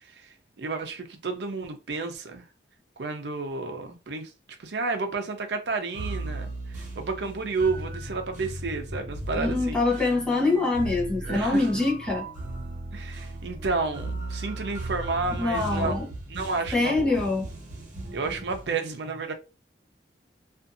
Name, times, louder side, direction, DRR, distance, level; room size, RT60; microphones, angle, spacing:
voice 1, 0.6-2.4 3.0-4.3 4.6-6.5 7.0-9.8 11.2-11.7 12.9-17.2 18.1-19.3, right 3 dB, 70° right, 0.6 m, -31 dB
sound 1, 5.9-18.7, right 1 dB, 45° right, 1.0 m, -36 dB
voice 2, 9.3-12.2 15.4-16.1 16.7-17.4, left 3 dB, 5° left, 0.8 m, -24 dB
2.6 x 2.5 x 2.5 m
head